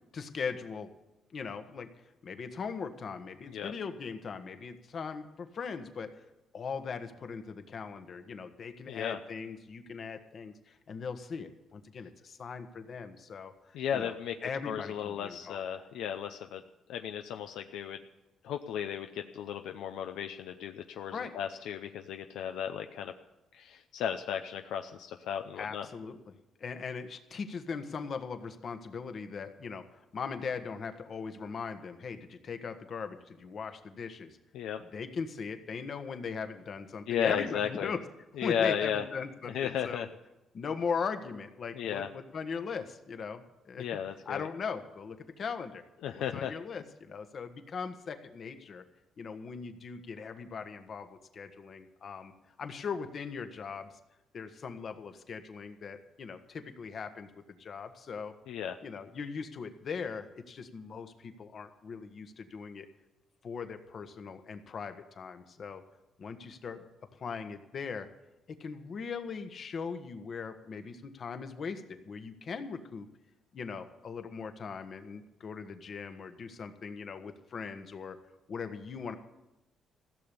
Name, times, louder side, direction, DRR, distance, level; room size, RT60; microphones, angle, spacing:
voice 1, 0.1-0.9 1.3-1.9 2.2-6.1 6.5-14.1 14.4-15.6 21.1-21.3 25.6-34.4 34.9-38.0 38.4-40.0 40.5-44.0 44.2-45.8 46.3-48.8 49.2-52.3 52.6-53.9 54.3-58.3 58.8-62.9 63.4-65.8 66.2-66.8 67.2-68.1 68.5-73.1 73.5-78.2 78.5-79.2, left 5 dB, 50° left, 8 dB, 1.4 m, -39 dB
voice 2, 8.9-9.2 13.7-14.4 14.6-16.6 16.9-18.0 18.4-23.1 23.5-25.9 34.5-34.8 37.1-37.9 38.4-39.0 39.5-40.1 41.7-42.1 43.8-44.5 46.0-46.5 58.5-58.8, left 9 dB, 85° left, 6 dB, 0.6 m, -34 dB
15.5 x 7.0 x 9.9 m, 0.96 s
cardioid pair, 90°, 0 cm